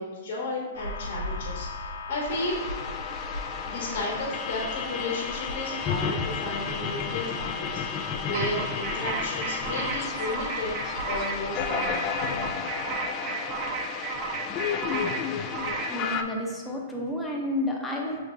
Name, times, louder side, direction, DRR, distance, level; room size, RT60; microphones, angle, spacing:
voice 1, 0.0-2.6 3.7-10.8 11.0-12.1, left 2 dB, 55° left, -3 dB, 1.1 m, -33 dB
sound 1, 0.7-12.5, left 3 dB, 75° left, 0.6 m, -37 dB
sound 2, 2.3-16.2, left 6 dB, 35° left, 0.3 m, -33 dB
sound 3, 8.3-16.0, right 5 dB, 40° right, 0.4 m, -34 dB
voice 2, 15.9-18.2, left 1 dB, 10° left, -1 dB, 0.8 m, -30 dB
6.0 x 3.3 x 2.5 m, 1.3 s
hypercardioid pair, 120°, 0 cm